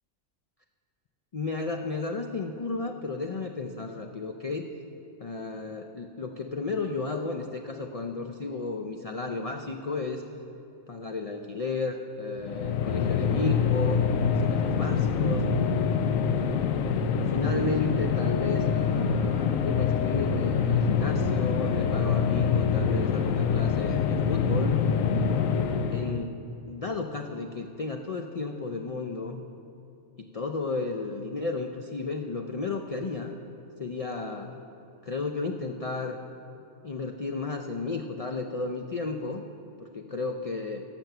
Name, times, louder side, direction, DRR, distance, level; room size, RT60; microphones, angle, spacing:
voice 1, 1.3-4.7 5.2-10.2 10.9-15.5 16.4-16.6 17.3-24.7 25.9-26.4 26.7-29.4 30.2-33.3 33.8-34.7 35.0-36.2 36.8-39.4 39.8-40.8, left 3 dB, 55° left, 4 dB, 0.4 m, -33 dB
sound 1, 12.4-26.3, left 6 dB, 90° left, 1.0 m, -25 dB
16.5 x 6.0 x 6.7 m, 2.7 s
omnidirectional pair, 1.3 m